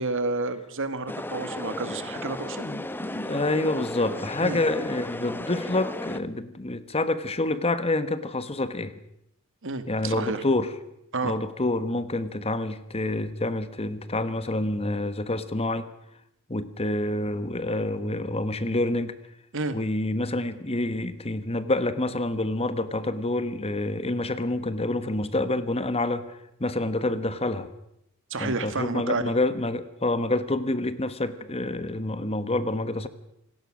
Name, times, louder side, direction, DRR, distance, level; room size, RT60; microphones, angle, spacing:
voice 1, 0.0-2.7 4.4-4.6 9.6-10.4 11.1-11.4 19.5-19.8 28.3-29.3, right 3 dB, 60° right, 10 dB, 2.0 m, -30 dB
sound 1, 1.1-6.2, left 1 dB, 10° left, 0.8 m, -35 dB
voice 2, 2.6-8.9 9.9-10.7 11.2-15.9 16.5-19.1 19.7-27.7 28.4-33.1, left 2 dB, 25° left, 12 dB, 1.3 m, -27 dB
27.0 x 18.5 x 6.4 m, 0.79 s
head